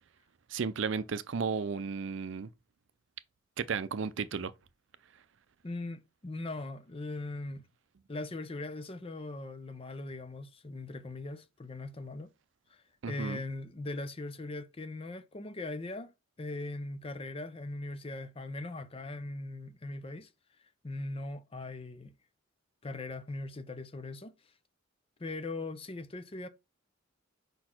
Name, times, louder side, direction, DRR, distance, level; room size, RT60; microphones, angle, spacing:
voice 1, 0.5-2.5 3.6-4.5 13.0-13.4, right 5 dB, 65° right, 0.5 m, -34 dB
voice 2, 5.6-7.6 8.1-12.3 12.7-16.1 16.4-20.3 20.8-22.1 22.8-24.3 25.2-26.5, left 2 dB, 30° left, 0.6 m, -40 dB
5.2 x 4.2 x 4.4 m
head